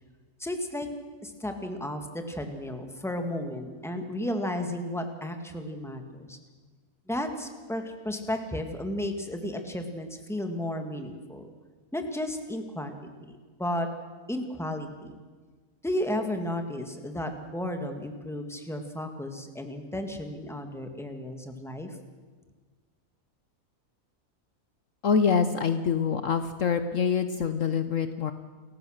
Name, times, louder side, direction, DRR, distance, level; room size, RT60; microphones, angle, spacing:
voice 1, 0.4-0.9 1.2-6.4 7.1-11.5 11.9-13.9 14.3-15.2 15.8-22.0, left 1 dB, ahead, 5 dB, 1.8 m, -33 dB
voice 2, 25.0-28.3, left 6 dB, 60° left, 10 dB, 1.1 m, -25 dB
28.5 x 15.0 x 6.5 m, 1.5 s
omnidirectional pair, 1.6 m